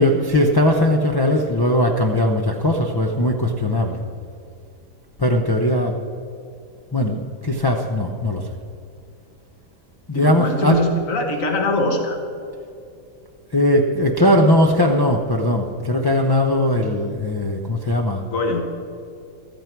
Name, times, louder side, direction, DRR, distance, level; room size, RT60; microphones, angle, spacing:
voice 1, 0.0-4.0 5.2-5.9 6.9-8.4 10.1-10.8 13.5-18.2, left 1 dB, 30° left, -1 dB, 0.4 m, -19 dB
voice 2, 10.1-12.2 18.3-18.7, left 2 dB, 60° left, 3 dB, 1.9 m, -22 dB
14.5 x 13.5 x 4.6 m, 2.5 s
omnidirectional pair, 1.6 m